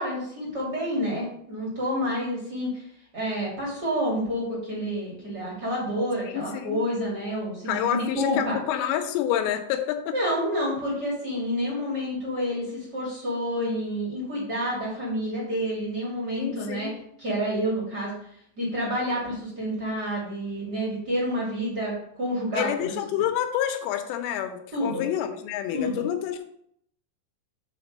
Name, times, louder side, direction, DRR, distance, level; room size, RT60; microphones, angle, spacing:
voice 1, 0.0-2.8 3.1-8.6 10.1-16.9 17.2-18.1 18.6-22.7 23.1-23.2 24.7-25.0 25.7-26.0, equal, 35° right, -6 dB, 1.7 m, -29 dB
voice 2, 6.3-6.8 7.7-10.1 16.4-16.9 22.5-26.4, left 10 dB, 85° left, 7 dB, 3.4 m, -28 dB
6.3 x 5.1 x 6.1 m, 0.68 s
omnidirectional pair, 5.6 m